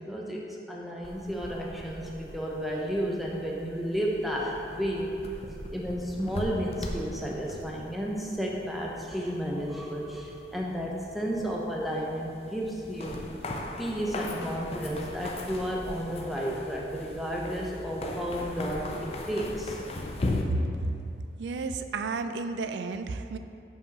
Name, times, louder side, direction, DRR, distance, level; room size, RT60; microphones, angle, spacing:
voice 1, 0.0-5.1 5.7-13.2 13.8-19.8, equal, ahead, -3 dB, 0.7 m, -32 dB
sound 1, 1.0-20.4, left 2 dB, 35° left, 0.5 m, -39 dB
voice 2, 20.5-21.1 21.4-23.4, right 3 dB, 85° right, 9 dB, 0.4 m, -32 dB
5.4 x 4.9 x 5.2 m, 2.6 s
head